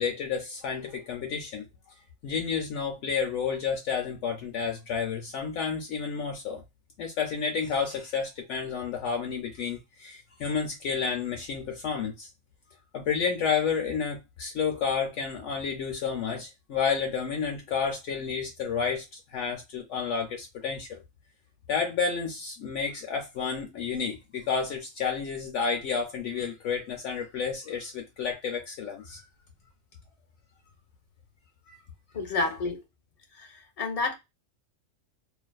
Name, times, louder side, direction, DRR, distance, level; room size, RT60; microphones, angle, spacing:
voice 1, 0.0-1.6 2.2-6.6 7.0-12.3 12.9-21.0 21.7-29.2 31.7-31.8, left 6 dB, 70° left, 0.9 m, -30 dB
voice 2, 32.1-32.8 33.3-34.2, left 3 dB, 45° left, 0.5 m, -30 dB
2.5 x 2.4 x 2.2 m
omnidirectional pair, 1.4 m